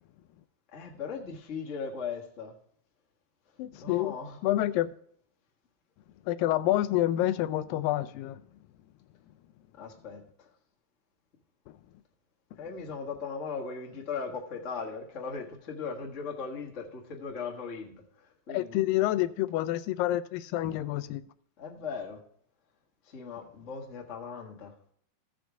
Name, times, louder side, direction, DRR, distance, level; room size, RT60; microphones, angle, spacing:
voice 1, 0.7-2.5 3.7-4.4 9.8-10.5 12.6-18.8 21.6-22.2 23.0-24.7, left 5 dB, 60° left, 0.7 m, -38 dB
voice 2, 3.6-4.2 4.4-4.9 6.3-8.4 18.5-21.2, left 14 dB, 85° left, 2.2 m, -28 dB
15.5 x 6.2 x 3.5 m
omnidirectional pair, 4.0 m